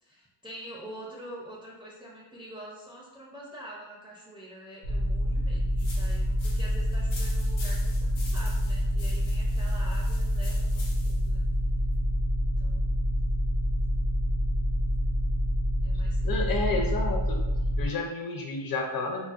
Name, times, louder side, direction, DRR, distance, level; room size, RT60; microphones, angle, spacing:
voice 1, 0.0-11.4 12.6-13.0 15.8-16.5, equal, 10° right, -4 dB, 0.4 m, -46 dB
sound 1, 4.8-17.9, equal, 85° right, 0.8 m, -27 dB
sound 2, 5.8-11.3, left 3 dB, 90° left, 0.9 m, -46 dB
voice 2, 16.2-17.4 17.8-19.2, left 3 dB, 50° left, 1 dB, 0.5 m, -30 dB
4.0 x 2.0 x 2.4 m, 1.0 s
wide cardioid pair, 160°, 46 cm